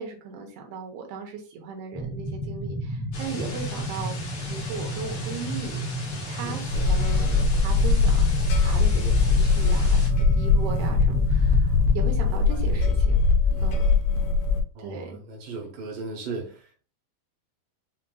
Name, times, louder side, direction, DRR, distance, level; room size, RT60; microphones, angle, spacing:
voice 1, 0.0-4.2 4.5-5.8 6.3-8.3 8.5-13.3 13.6-13.9 14.8-15.2, right 4 dB, 85° right, 3.0 m, -37 dB
sound 1, 1.9-12.3, right 1 dB, 15° right, 0.9 m, -32 dB
sound 2, 3.1-10.1, left 3 dB, 60° left, 1.5 m, -40 dB
sound 3, 6.7-14.6, left 4 dB, 80° left, 2.2 m, -21 dB
voice 2, 14.7-16.9, right 3 dB, 65° right, 2.4 m, -37 dB
7.3 x 2.9 x 2.3 m
omnidirectional pair, 4.5 m